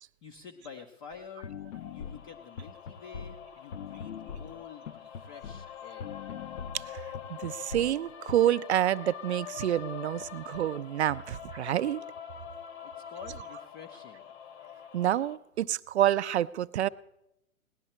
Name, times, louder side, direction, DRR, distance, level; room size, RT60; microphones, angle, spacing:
voice 1, 0.2-1.5 1.9-4.9 5.2-6.2 12.8-14.3, left 6 dB, 15° left, 2 dB, 0.5 m, -48 dB
sound 1, 1.1-1.2 1.4-5.7 6.0-8.3, left 7 dB, 70° left, 0.7 m, -42 dB
sound 2, 1.8-15.4, left 9 dB, 50° left, 1.1 m, -45 dB
voice 2, 6.7-12.0 14.9-16.9, right 12 dB, 55° right, 16 dB, 0.5 m, -28 dB
18.5 x 10.5 x 4.3 m, 0.85 s
figure-of-eight pair, 125°, 41 cm